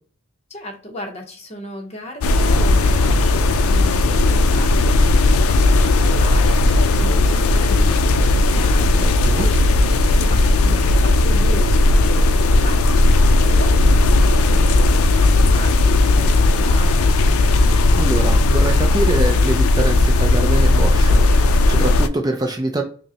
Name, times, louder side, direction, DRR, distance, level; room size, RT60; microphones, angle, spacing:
voice 1, 0.5-9.6 10.0-17.1, left 1 dB, 30° left, 3 dB, 0.7 m, -35 dB
sound 1, 2.2-22.1, left 2 dB, 80° left, 0.4 m, -15 dB
voice 2, 9.0-9.4 18.0-22.8, right 2 dB, 20° right, 3 dB, 0.4 m, -24 dB
5.1 x 2.1 x 2.8 m, 0.42 s
head